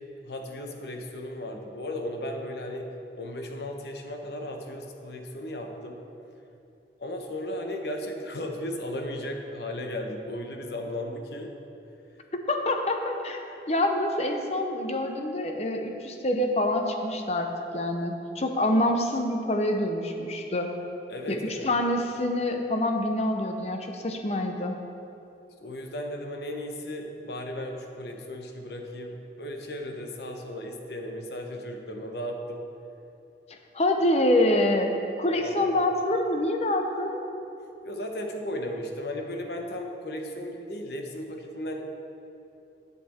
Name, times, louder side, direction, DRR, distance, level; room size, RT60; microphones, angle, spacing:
voice 1, 0.2-2.9 3.2-6.0 7.0-11.5 21.1-21.7 25.6-32.6 35.3-35.7 37.8-41.8, left 1 dB, 70° left, 3 dB, 0.9 m, -35 dB
voice 2, 12.5-13.4 13.7-20.7 21.3-24.8 33.7-34.9 35.2-37.2, left 1 dB, 35° left, 4 dB, 0.7 m, -26 dB
10.0 x 6.9 x 4.3 m, 2.8 s
head